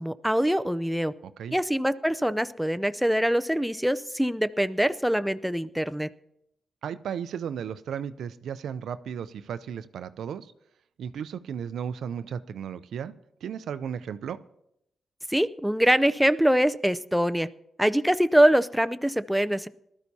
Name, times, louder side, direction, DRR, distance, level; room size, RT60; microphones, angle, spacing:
voice 1, 0.0-1.1 1.5-6.1 15.3-17.5 17.8-19.7, equal, ahead, 11 dB, 0.5 m, -24 dB
voice 2, 1.2-1.6 6.8-10.5 11.0-13.1 13.4-14.4, right 8 dB, 80° right, 13 dB, 0.5 m, -35 dB
19.5 x 12.5 x 2.8 m, 0.79 s
cardioid pair, 75°, 0 cm